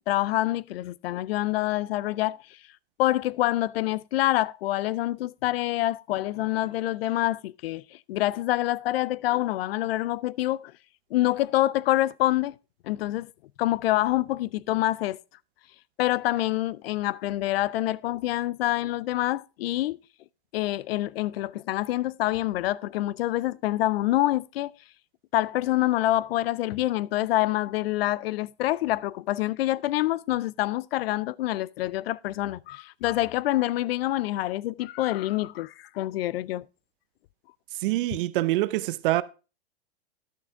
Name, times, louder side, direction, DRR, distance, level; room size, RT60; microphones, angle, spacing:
voice 1, 0.1-2.4 3.0-7.8 8.1-10.7 11.1-12.6 12.8-13.3 13.6-15.2 16.0-20.0 20.5-24.7 25.3-36.7, left 15 dB, 65° left, 0.4 m, -26 dB
voice 2, 37.8-39.2, right 17 dB, 55° right, 0.6 m, -25 dB
11.0 x 6.9 x 3.5 m
supercardioid pair, 145°, 32 cm